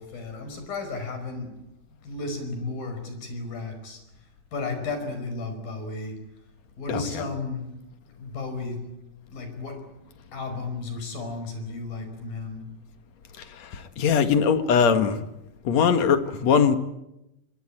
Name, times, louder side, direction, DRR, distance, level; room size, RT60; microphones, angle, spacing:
voice 1, 0.0-1.6 2.0-4.0 4.5-6.2 6.8-7.8 8.2-8.9 9.3-9.9 10.3-12.7, left 3 dB, 90° left, 7.0 m, -33 dB
voice 2, 13.6-15.2 15.6-16.8, left 6 dB, 55° left, 2.6 m, -21 dB
24.5 x 23.5 x 8.9 m
omnidirectional pair, 4.0 m